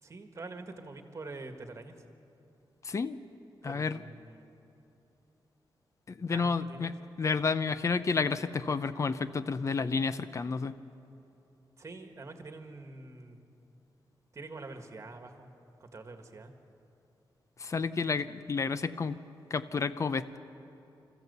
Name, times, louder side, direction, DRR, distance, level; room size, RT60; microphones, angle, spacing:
voice 1, 0.0-2.0 3.6-4.6 6.3-7.1 11.8-13.4 14.3-15.5 15.8-16.5, right 3 dB, 35° right, 6 dB, 1.6 m, -46 dB
voice 2, 2.9-3.2 3.6-4.0 6.2-10.7 17.6-19.2 19.5-20.4, left 4 dB, 35° left, 13 dB, 0.7 m, -30 dB
27.0 x 14.5 x 8.1 m, 2.8 s
wide cardioid pair, 150°, 8 cm